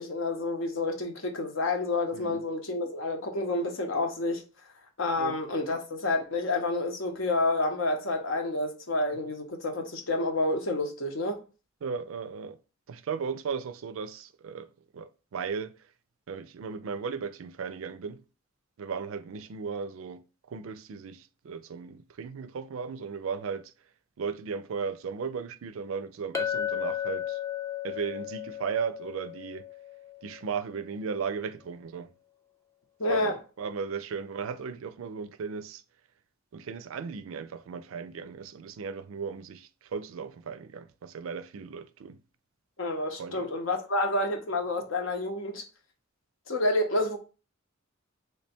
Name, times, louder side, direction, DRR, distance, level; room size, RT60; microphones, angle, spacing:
voice 1, 0.0-4.4 5.0-11.4 33.0-33.4 42.8-45.6 46.5-47.2, left 2 dB, 70° left, 0.8 m, -29 dB
voice 2, 2.1-2.4 5.2-5.4 11.8-12.6 12.9-15.7 16.3-18.2 18.8-23.7 24.2-27.4 27.8-29.7 30.2-32.1 33.1-35.8 36.5-42.2 43.2-43.5, right 6 dB, 75° right, 0.4 m, -36 dB
Chink clink, 26.3-30.8, left 9 dB, 15° left, 0.3 m, -35 dB
3.3 x 2.2 x 4.3 m
head